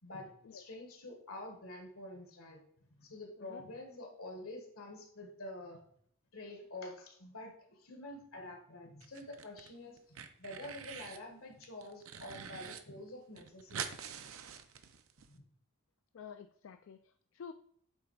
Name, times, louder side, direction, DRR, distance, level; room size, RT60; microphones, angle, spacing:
voice 1, 0.0-2.6 2.9-5.8 6.3-13.8 15.3-15.4, left 1 dB, 90° left, 2 dB, 1.7 m, -48 dB
sound 1, 9.0-9.7 10.0-11.2 11.6-12.8 13.1-13.2 13.4-15.3, right 7 dB, 80° right, 0.7 m, -45 dB
voice 2, 16.1-17.5, left 6 dB, 65° left, 8 dB, 0.4 m, -50 dB
8.5 x 3.5 x 4.7 m, 0.66 s
head